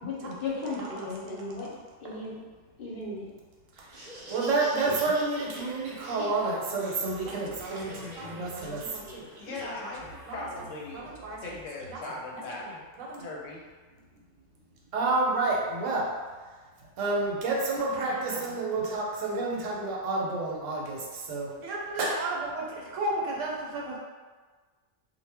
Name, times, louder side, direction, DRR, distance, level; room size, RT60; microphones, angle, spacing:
voice 1, 0.0-2.4 2.8-3.3 4.9-5.0, left 3 dB, 55° left, -6 dB, 0.7 m, -36 dB
voice 2, 0.6-1.1 3.8-3.9 4.3-10.5 10.9-11.6 11.9-12.0 12.3-13.3 14.9-16.2 17.0-24.0, right 3 dB, 90° right, -2 dB, 1.0 m, -30 dB
Laughter, 3.8-10.3, equal, 45° right, 0.6 m, -45 dB
voice 3, 9.4-11.1 11.4-12.6 13.2-13.6, left 3 dB, 85° left, -3 dB, 1.0 m, -39 dB
2.1 x 2.0 x 3.3 m, 1.4 s
omnidirectional pair, 1.3 m